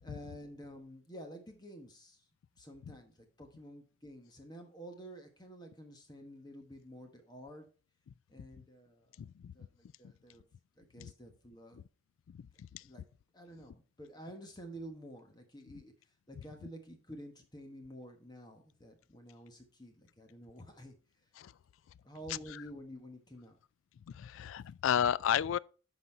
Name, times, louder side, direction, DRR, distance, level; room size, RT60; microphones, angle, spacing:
voice 1, 0.0-2.3 2.5-7.7 8.3-9.2 9.5-10.4 10.8-11.8 12.8-13.1 13.3-20.9 22.0-23.6, equal, 20° left, 1.2 m, -50 dB
voice 2, 24.2-25.6, left 9 dB, 80° left, 0.3 m, -30 dB
11.5 x 4.2 x 4.4 m
head